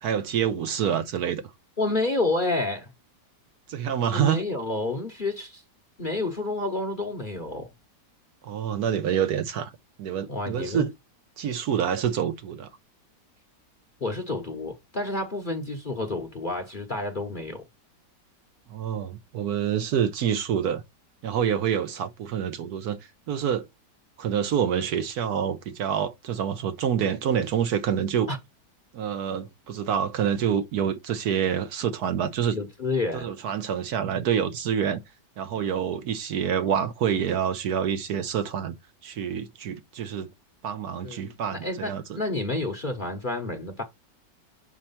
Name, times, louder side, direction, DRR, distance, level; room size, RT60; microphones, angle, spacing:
voice 1, 0.0-1.4 3.7-4.4 8.4-9.7 10.0-10.9 11.4-12.7 18.7-20.8 21.2-23.0 23.3-23.7 24.2-28.3 28.9-32.6 33.1-35.0 35.4-38.8 39.0-40.3 40.6-42.2, right 8 dB, 70° right, 1.2 m, -27 dB
voice 2, 1.8-2.9 4.1-5.6 6.0-7.7 10.3-10.8 14.0-17.6 28.3-28.4 32.5-33.3 41.0-43.8, left 2 dB, 40° left, 0.8 m, -29 dB
6.2 x 4.4 x 5.5 m
omnidirectional pair, 1.9 m